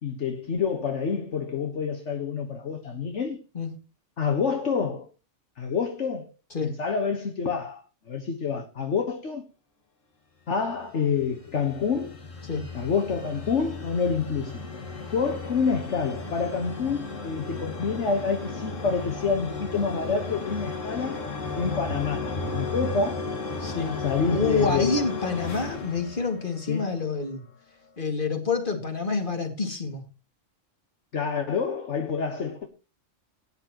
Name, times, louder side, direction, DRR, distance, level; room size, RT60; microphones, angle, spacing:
voice 1, 0.0-3.4 4.2-5.1 5.6-6.2 6.6-7.8 8.1-9.4 10.5-12.1 12.7-14.6 15.1-21.2 21.6-23.2 24.0-25.0 26.7-26.9 31.1-32.7, left 5 dB, 70° left, 1.6 m, -27 dB
sound 1, 10.8-26.9, left 3 dB, 85° left, 2.4 m, -35 dB
voice 2, 23.6-24.0 24.3-27.4 28.0-30.1, left 4 dB, 40° left, 2.4 m, -28 dB
17.5 x 9.8 x 3.0 m
omnidirectional pair, 1.3 m